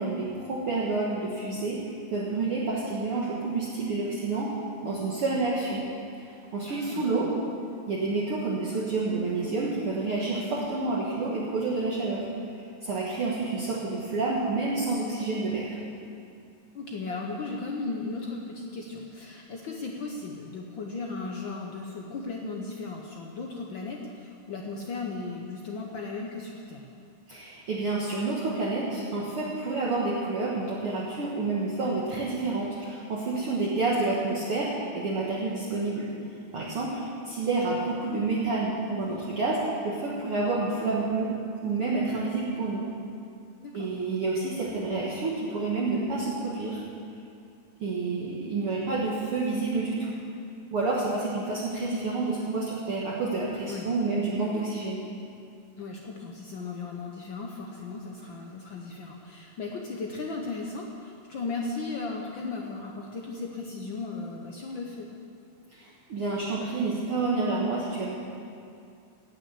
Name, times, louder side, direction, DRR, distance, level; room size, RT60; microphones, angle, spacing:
voice 1, 0.0-1.8 2.1-4.5 4.8-5.8 6.1-7.3 7.9-12.2 12.6-15.8 27.3-36.1 36.5-37.0 37.3-41.3 41.6-42.8 43.7-46.8 47.8-50.2 50.7-55.0 65.7-68.1, right 3 dB, 55° right, -5 dB, 2.1 m, -29 dB
voice 2, 6.7-7.3 16.7-26.8 43.6-43.9 53.7-53.9 55.8-65.1, left 3 dB, 70° left, 0 dB, 1.1 m, -36 dB
17.0 x 6.1 x 8.4 m, 2.5 s
omnidirectional pair, 3.4 m